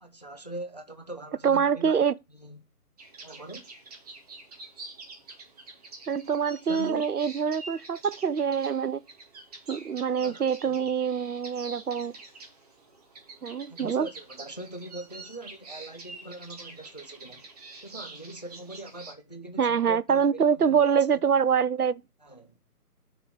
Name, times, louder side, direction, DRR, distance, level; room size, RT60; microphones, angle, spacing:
voice 1, 0.0-2.0 2.3-2.6 3.2-3.7 6.6-7.0 10.2-10.9 13.7-17.5 17.8-21.3 22.2-22.6, right 2 dB, 30° left, 0.5 m, -42 dB
voice 2, 1.4-2.1 6.1-9.0 9.7-12.1 13.4-14.1 19.6-22.0, right 7 dB, 70° right, 0.7 m, -25 dB
sound 1, 3.0-19.1, right 3 dB, 25° right, 1.4 m, -47 dB
6.0 x 4.9 x 5.7 m
figure-of-eight pair, 145°, 46 cm